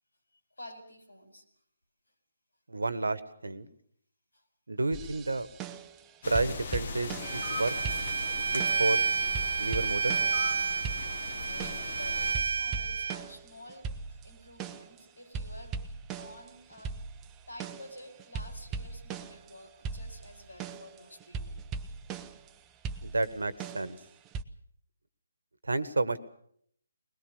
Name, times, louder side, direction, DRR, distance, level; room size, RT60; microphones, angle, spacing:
voice 1, 0.3-1.5 4.3-4.5 11.4-17.0 17.5-21.6, left 1 dB, 80° left, 8 dB, 4.8 m, -50 dB
voice 2, 2.7-3.7 4.7-5.5 6.3-7.7 8.5-9.0 9.6-10.2 23.0-24.0 25.6-26.2, right 2 dB, 75° right, 15 dB, 1.5 m, -30 dB
sound 1, 4.9-6.0 6.3-7.6 7.8-9.0 9.3-10.6 10.8-12.0 12.3-15.0 15.3-19.5 19.8-22.5 22.8-24.4, right 5 dB, 15° right, 0.8 m, -40 dB
sound 2, 6.2-12.3, left 5 dB, 45° left, 1.6 m, -40 dB
Bowed string instrument, 7.2-13.2, right 5 dB, 50° right, 1.1 m, -30 dB
21.0 x 21.0 x 7.0 m, 0.67 s
figure-of-eight pair, 145°, 0 cm